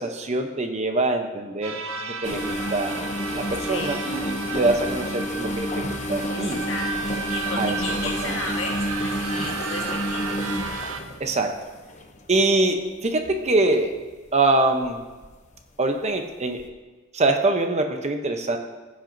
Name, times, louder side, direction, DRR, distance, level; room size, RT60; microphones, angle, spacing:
voice 1, 0.0-3.0 3.3-6.6 7.6-7.8 8.2-8.4 11.2-11.6 12.3-13.9 14.3-15.0 15.8-16.6 17.1-18.6, right 2 dB, 35° right, 5 dB, 0.8 m, -24 dB
sound 1, 1.6-11.0, right 5 dB, 85° right, 0.7 m, -33 dB
sound 2, 2.2-12.4 13.1-13.3 13.8-14.0 14.8-15.3 15.6-15.7 16.6-16.7, equal, 35° left, 0.7 m, -30 dB
voice 2, 3.7-4.0 6.3-6.9 7.3-10.4, left 3 dB, 70° left, 1 dB, 1.5 m, -34 dB
15.5 x 7.5 x 2.7 m, 1.3 s
head